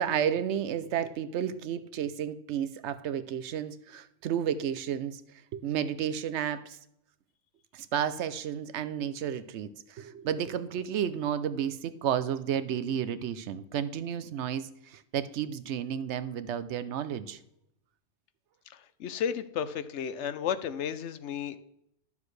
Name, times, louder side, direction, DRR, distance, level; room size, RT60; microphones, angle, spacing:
voice 1, 0.0-6.8 7.7-17.4, right 9 dB, 70° right, 13 dB, 0.9 m, -32 dB
voice 2, 18.7-21.6, left 8 dB, 75° left, 13 dB, 0.9 m, -33 dB
11.5 x 7.0 x 3.2 m, 0.79 s
omnidirectional pair, 1.2 m